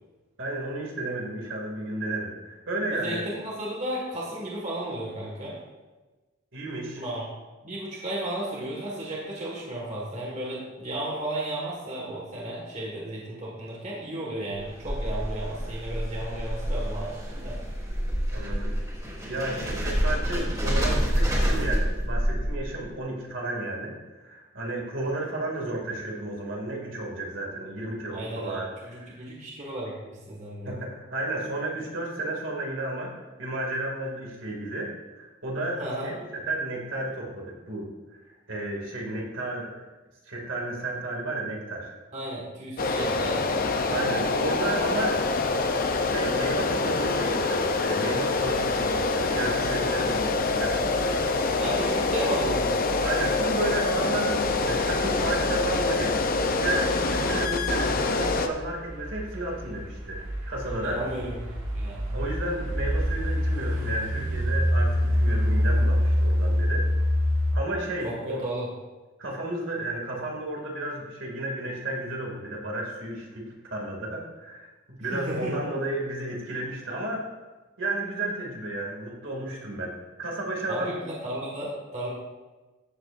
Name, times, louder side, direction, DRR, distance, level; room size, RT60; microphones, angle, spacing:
voice 1, 0.4-3.2 6.5-7.0 18.3-18.7 19.3-28.7 29.0-29.2 30.7-33.1 33.4-37.9 38.2-39.8 40.2-41.9 43.9-45.3 46.0-51.2 53.0-56.1 56.6-61.0 62.1-66.9 67.5-68.4 69.2-77.3 77.8-81.0, right 2 dB, 65° right, -2 dB, 2.4 m, -32 dB
voice 2, 2.9-5.6 7.0-7.3 7.6-17.6 28.1-30.8 35.7-36.1 42.1-43.6 44.4-44.5 51.6-52.8 60.7-62.0 68.0-68.7 75.1-75.7 80.7-82.1, right 1 dB, 35° right, -4 dB, 1.8 m, -34 dB
sound 1, 14.5-22.9, equal, 20° right, 2.9 m, -28 dB
sound 2, 42.8-58.5, left 3 dB, 45° left, 0.6 m, -26 dB
sound 3, 48.4-67.5, equal, 90° right, 2.1 m, -28 dB
14.0 x 7.9 x 2.6 m, 1.2 s
head